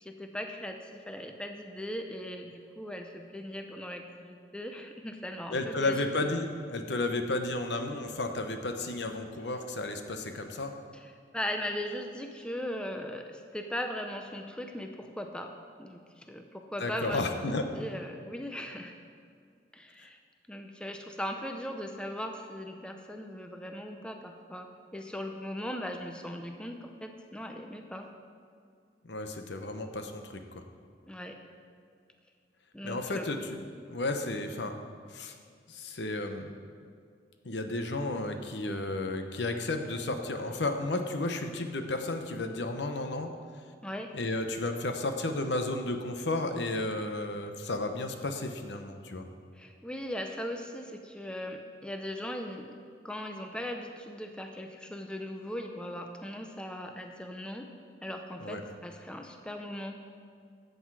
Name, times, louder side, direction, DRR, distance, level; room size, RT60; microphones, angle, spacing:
voice 1, 0.0-6.3 10.9-15.5 15.8-17.4 17.8-18.9 19.7-20.2 20.5-28.1 31.1-31.4 32.7-33.3 43.8-44.1 49.5-52.7 53.0-57.7 58.0-60.0, left 1 dB, 5° left, 4 dB, 0.6 m, -39 dB
voice 2, 5.5-10.7 16.8-17.6 29.0-30.6 32.8-33.6 33.9-34.7 35.1-35.4 35.7-36.5 37.4-43.3 44.1-49.3 58.4-58.6, left 2 dB, 85° left, 6 dB, 0.9 m, -33 dB
13.5 x 8.1 x 4.8 m, 2.2 s
head